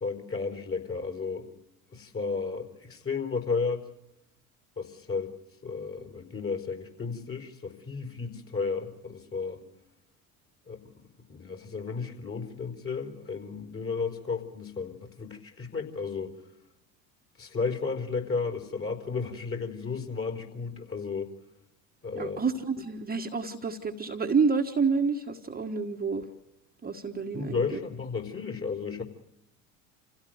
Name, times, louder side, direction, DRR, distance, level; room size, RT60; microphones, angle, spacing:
voice 1, 0.0-1.5 1.9-3.8 4.8-5.3 5.6-9.6 10.6-10.9 11.3-16.3 17.4-21.3 22.0-22.4 27.3-29.0, left 4 dB, 30° left, 4 dB, 4.4 m, -33 dB
voice 2, 22.1-26.3 26.8-27.8, right 5 dB, 20° right, 3 dB, 1.5 m, -29 dB
27.0 x 16.5 x 7.9 m, 0.82 s
hypercardioid pair, 75°, 42 cm